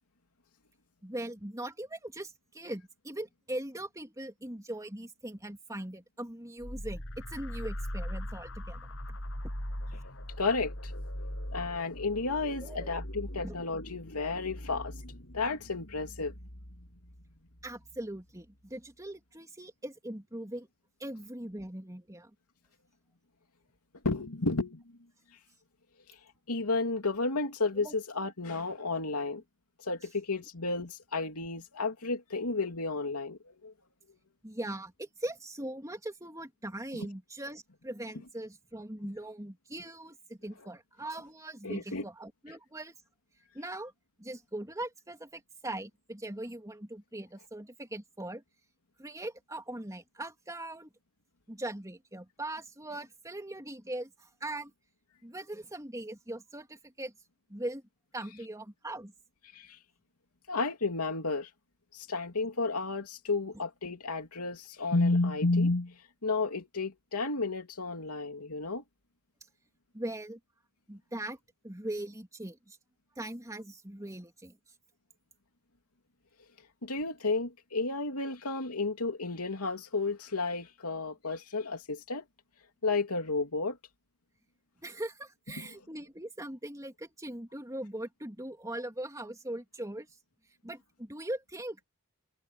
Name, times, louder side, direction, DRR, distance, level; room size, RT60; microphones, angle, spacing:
voice 1, 1.0-9.2 9.9-10.0 12.6-12.9 13.4-13.6 17.6-20.7 21.0-22.3 27.8-27.9 34.4-42.9 43.5-43.9 44.2-48.4 49.0-50.9 51.5-54.7 55.2-57.1 57.5-57.8 58.1-59.1 69.9-70.4 70.9-71.4 71.6-72.8 73.1-74.6 84.8-90.1 90.6-91.8, right 1 dB, 15° right, 3.3 m, -40 dB
sound 1, 6.6-18.0, equal, 60° left, 7.2 m, -41 dB
voice 2, 10.4-10.9 11.5-14.9 15.3-16.3 24.0-24.8 26.5-29.4 29.8-33.7 36.9-37.1 41.6-42.0 59.5-59.8 60.5-61.5 61.9-65.9 66.2-68.8 76.8-82.2 82.8-83.8 85.6-85.7, left 3 dB, 90° left, 2.8 m, -32 dB
head